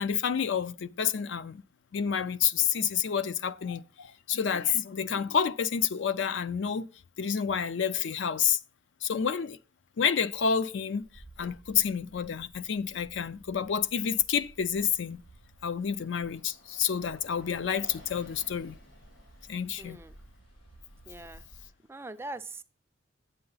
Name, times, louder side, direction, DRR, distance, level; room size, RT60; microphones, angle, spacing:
voice 1, 0.0-1.6 1.9-6.9 7.2-8.6 9.0-9.6 10.0-11.1 11.4-15.2 15.6-18.8 19.5-20.0, left 7 dB, 65° left, 0.4 m, -29 dB
Bus, 11.0-21.7, right 1 dB, 80° left, 4.9 m, -54 dB
voice 2, 19.8-20.1 21.1-21.4 21.9-22.6, right 2 dB, 10° right, 0.4 m, -41 dB
8.6 x 7.9 x 3.9 m
head